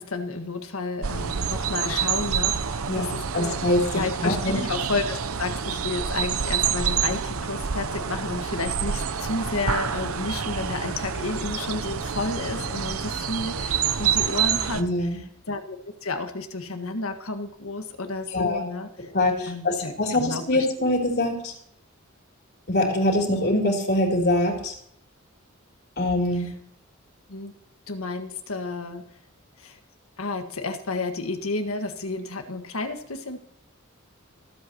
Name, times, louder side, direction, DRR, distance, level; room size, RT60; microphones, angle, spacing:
voice 1, 0.0-3.6 3.9-15.1 15.5-19.1 19.5-20.7 26.3-26.5 27.3-27.5 27.9-29.1 29.6-29.8 30.2-33.4, left 3 dB, 85° left, 6 dB, 1.6 m, -31 dB
sound 1, 1.0-14.8, right 7 dB, 90° right, 0.8 m, -27 dB
voice 2, 3.3-4.6 14.8-15.2 18.3-18.6 19.1-21.5 22.7-24.7 26.0-26.5, left 1 dB, 50° left, 1 dB, 3.4 m, -24 dB
21.5 x 8.2 x 3.0 m, 0.71 s
head